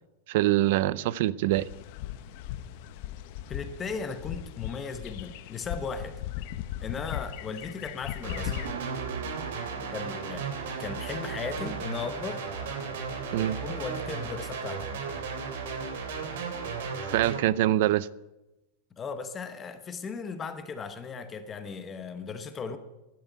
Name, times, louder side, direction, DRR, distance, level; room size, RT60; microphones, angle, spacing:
voice 1, 0.3-1.7 13.3-13.6 17.1-18.1, right 15 dB, 60° right, 20 dB, 0.5 m, -24 dB
sound 1, 1.5-8.7, left 12 dB, 50° left, 0.8 m, -38 dB
voice 2, 3.5-6.2 6.8-8.6 9.9-10.5 10.8-12.4 13.4-14.9 19.0-22.8, left 5 dB, 20° left, 10 dB, 1.0 m, -37 dB
sound 2, 8.2-17.4, right 5 dB, 75° right, 3.2 m, -35 dB
sound 3, 8.6-14.8, right 8 dB, 90° right, 1.5 m, -45 dB
11.5 x 10.0 x 9.2 m, 0.99 s
supercardioid pair, 160°, 0 cm